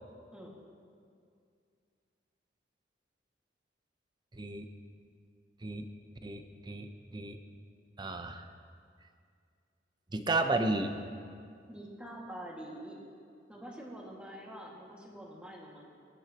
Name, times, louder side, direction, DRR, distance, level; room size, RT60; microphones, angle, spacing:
voice 1, 4.3-4.7 5.6-5.9 6.2-7.4 8.0-8.4 10.1-10.9, right 2 dB, 25° right, 6 dB, 0.7 m, -33 dB
voice 2, 11.7-13.0 13.5-15.8, right 1 dB, 5° right, -3 dB, 2.0 m, -46 dB
23.0 x 9.9 x 3.0 m, 2.3 s
head